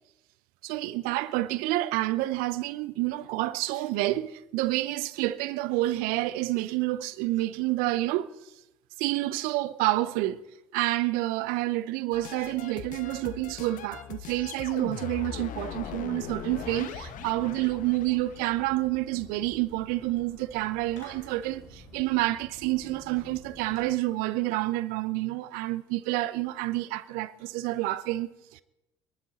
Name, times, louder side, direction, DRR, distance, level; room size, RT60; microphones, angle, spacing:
voice 1, 0.6-8.3 9.0-10.4 10.7-28.6, right 17 dB, 70° right, 0.7 m, -29 dB
sound 1, 12.1-18.4, left 9 dB, 55° left, 1.2 m, -40 dB
Fireworks, 16.4-23.8, left 1 dB, 75° left, 3.3 m, -50 dB
25.0 x 11.5 x 4.2 m
hypercardioid pair, 60°, 16 cm